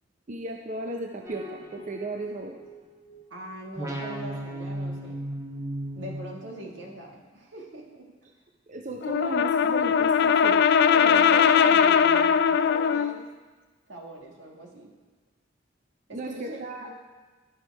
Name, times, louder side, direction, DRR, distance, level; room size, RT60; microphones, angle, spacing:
voice 1, 0.3-2.6 8.7-10.7 11.0-11.2 16.1-16.9, right 2 dB, 40° right, 2 dB, 0.5 m, -35 dB
sound 1, 1.2-3.3 3.8-7.0, right 1 dB, 15° right, 1.2 m, -37 dB
voice 2, 3.3-5.2 6.0-8.1 10.9-13.2 13.9-14.9 16.1-16.9, right 1 dB, 75° right, -1 dB, 1.7 m, -41 dB
Brass instrument, 9.0-13.2, left 7 dB, 60° left, 0.3 m, -20 dB
10.5 x 6.9 x 4.7 m, 1.3 s
head